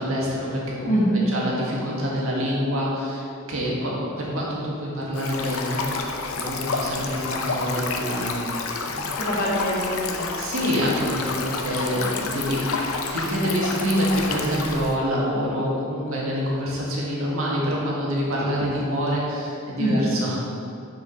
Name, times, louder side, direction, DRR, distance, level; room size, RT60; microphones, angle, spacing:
voice 1, 0.0-1.0 1.3-9.1 10.4-12.7 13.0-20.4, equal, 85° right, -4 dB, 1.7 m, -26 dB
voice 2, 0.8-1.3 9.2-10.2 19.8-20.0, right 1 dB, 40° left, -5 dB, 1.7 m, -23 dB
Stream, 5.1-14.9, left 4 dB, 85° left, 0.7 m, -29 dB
6.4 x 5.1 x 5.3 m, 2.6 s
head